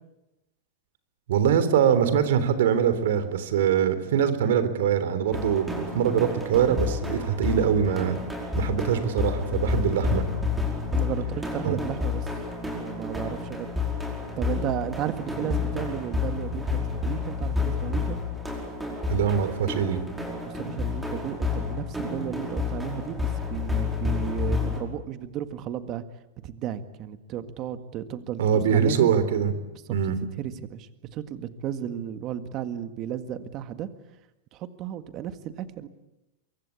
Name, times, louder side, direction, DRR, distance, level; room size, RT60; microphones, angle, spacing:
voice 1, 1.3-8.2 8.5-10.2 11.6-11.8 19.1-20.0 28.4-29.5 29.9-30.2, right 8 dB, 70° right, 12 dB, 3.6 m, -23 dB
sound 1, 5.3-24.8, left 4 dB, 5° right, 5.0 m, -30 dB
voice 2, 9.5-9.8 10.9-12.2 12.8-13.7 14.4-18.2 20.4-26.0 26.4-28.4 28.7-29.1 30.4-33.9 34.5-35.9, right 10 dB, 35° right, 10 dB, 1.8 m, -34 dB
24.0 x 23.0 x 8.6 m, 0.94 s
supercardioid pair, 155°, 0 cm